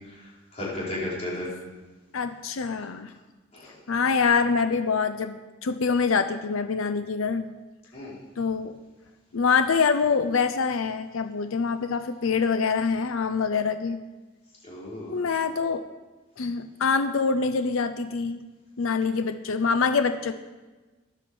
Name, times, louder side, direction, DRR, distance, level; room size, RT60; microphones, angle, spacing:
voice 1, 0.2-1.5 3.5-3.8 7.9-8.2 14.6-15.2, left 1 dB, 35° left, -6 dB, 4.5 m, -34 dB
voice 2, 2.1-3.1 3.9-7.5 8.4-8.7 9.3-14.0 15.1-15.9 16.4-18.4 18.8-20.3, left 5 dB, 85° left, 10 dB, 0.6 m, -25 dB
10.5 x 8.3 x 6.9 m, 1.2 s
head